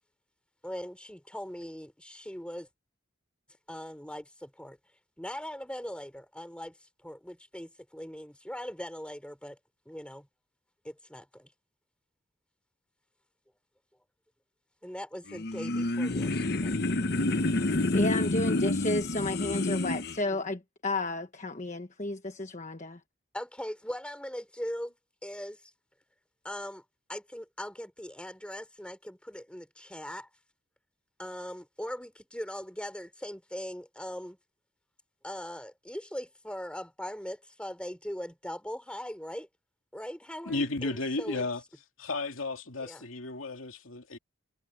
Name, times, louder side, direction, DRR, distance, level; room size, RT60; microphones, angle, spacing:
voice 1, 0.6-2.7 3.7-4.8 5.2-9.6 9.9-10.3 10.8-11.5 14.8-16.9 20.3-20.4 23.3-24.9 25.2-25.7 26.4-26.8 27.1-30.3 31.2-34.4 35.2-39.5 39.9-41.5 42.8-43.0, equal, 5° left, 3.6 m, -40 dB
sound 1, 15.3-20.2, left 2 dB, 50° left, 0.9 m, -28 dB
voice 2, 17.9-23.0, left 2 dB, 35° left, 1.2 m, -32 dB
voice 3, 40.5-41.6 42.0-44.2, left 2 dB, 85° left, 2.6 m, -33 dB
head